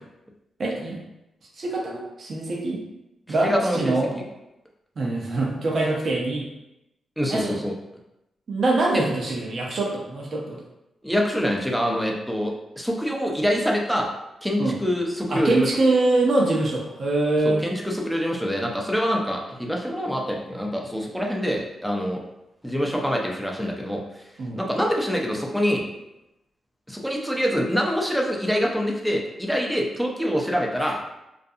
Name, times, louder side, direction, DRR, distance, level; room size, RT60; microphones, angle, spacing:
voice 1, 0.6-1.0 1.6-2.8 3.3-4.1 5.0-6.5 7.3-7.6 8.5-10.6 14.6-14.7 15.3-17.6 24.4-24.6, right 2 dB, 60° right, -2 dB, 0.7 m, -24 dB
voice 2, 3.4-4.2 7.2-7.7 11.0-14.1 14.4-15.7 17.4-22.2 22.6-24.0 24.6-25.8 26.9-31.0, equal, ahead, -1 dB, 0.6 m, -25 dB
2.5 x 2.2 x 2.6 m, 0.91 s
cardioid pair, 60°, 0 cm